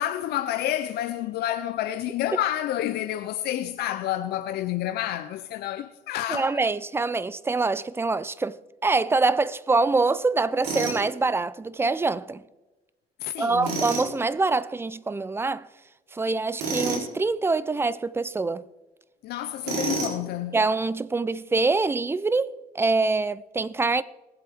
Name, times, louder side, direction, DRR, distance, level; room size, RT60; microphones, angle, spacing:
voice 1, 0.0-6.6 13.2-13.8 19.2-20.6, left 12 dB, 75° left, 0.6 m, -29 dB
voice 2, 6.3-12.4 13.4-15.7 16.1-18.7 20.5-24.0, right 3 dB, 15° right, 0.4 m, -25 dB
Tools, 10.6-11.0 13.6-14.1 16.6-17.1 19.6-20.2, right 4 dB, 85° right, 3.5 m, -28 dB
19.5 x 7.8 x 3.5 m
cardioid pair, 110°, 17 cm